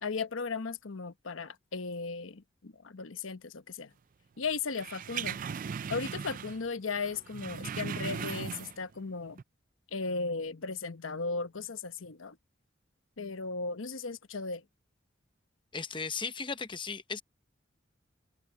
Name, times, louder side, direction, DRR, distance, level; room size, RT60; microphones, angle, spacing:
voice 1, 0.0-3.9 4.4-5.4 5.9-9.4 9.9-12.4 13.2-14.6, left 4 dB, 90° left, 1.0 m, -36 dB
sound 1, 4.7-6.7 6.9-9.0 9.3-9.4, right 7 dB, 45° right, 0.4 m, -38 dB
voice 2, 15.7-17.2, left 5 dB, 25° left, 0.9 m, -36 dB
head